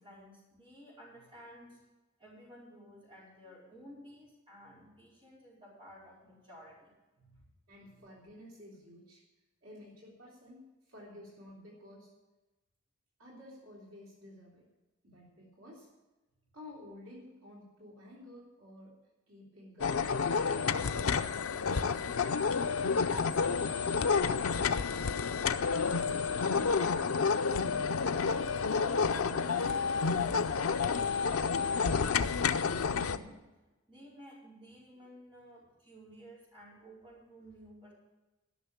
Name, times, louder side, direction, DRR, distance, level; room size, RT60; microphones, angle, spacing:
voice 1, 0.0-1.8 2.2-7.5 8.0-8.1 28.6-33.4 33.9-37.9, equal, 25° right, -6 dB, 4.6 m, -52 dB
voice 2, 7.7-9.2 9.6-12.1 13.2-14.7 15.0-15.9 16.5-19.0 19.3-20.3 20.7-21.9 22.2-22.8 23.2-25.2 25.8-26.7, left 1 dB, 70° right, -5 dB, 3.4 m, -53 dB
sound 1, 19.8-33.2, left 5 dB, 85° left, 0.6 m, -30 dB
12.5 x 6.5 x 8.6 m, 1.1 s
head